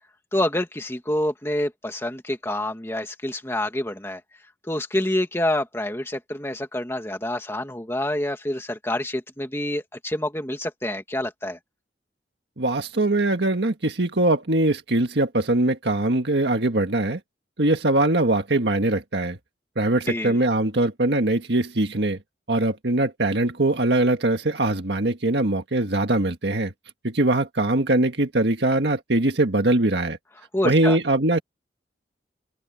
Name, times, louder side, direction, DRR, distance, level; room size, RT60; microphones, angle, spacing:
voice 1, 0.3-4.2 4.7-11.6 20.1-20.4 30.5-31.0, left 1 dB, 15° left, 2.1 m, -27 dB
voice 2, 12.6-17.2 17.6-19.4 19.8-22.2 22.5-26.7 27.0-30.2 30.6-31.4, right 2 dB, 75° right, 1.6 m, -22 dB
open air
head